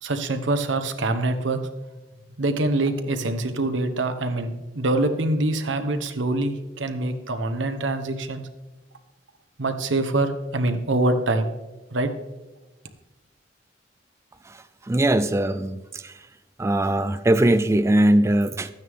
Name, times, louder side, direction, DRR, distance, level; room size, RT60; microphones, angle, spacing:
voice 1, 0.0-1.6 2.4-8.5 9.6-11.5 11.9-12.1, right 2 dB, 80° right, 8 dB, 1.0 m, -24 dB
voice 2, 14.9-16.1 16.6-18.7, right 1 dB, 15° right, 11 dB, 0.3 m, -20 dB
12.5 x 9.4 x 3.6 m, 1.1 s
head